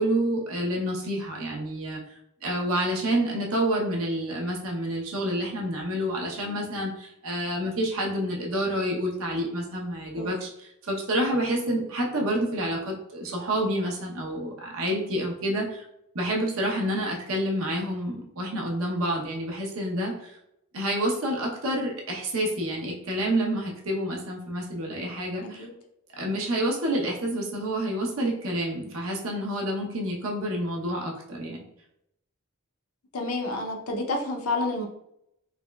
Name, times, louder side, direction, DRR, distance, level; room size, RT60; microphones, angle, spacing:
voice 1, 0.0-2.0 2.4-15.8 16.1-20.3 20.7-25.7 26.2-31.6, right 1 dB, 70° right, 0 dB, 0.8 m, -28 dB
voice 2, 33.1-34.9, left 2 dB, 80° left, 3 dB, 0.6 m, -29 dB
3.4 x 3.0 x 2.3 m, 0.78 s
head